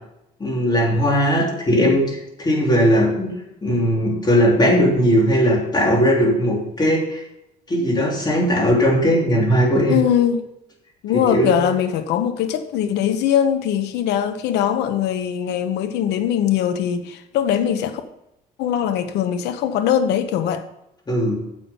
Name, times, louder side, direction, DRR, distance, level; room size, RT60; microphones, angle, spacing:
voice 1, 0.4-3.3 3.6-7.2 7.7-10.0 11.1-11.5 21.1-21.4, equal, 25° left, 3.2 m, -18 dB
voice 2, 9.9-10.4 11.0-18.0 18.6-20.6, left 9 dB, 80° left, 1.0 m, -21 dB
9.9 x 7.5 x 5.6 m
cardioid pair, 110°, 17 cm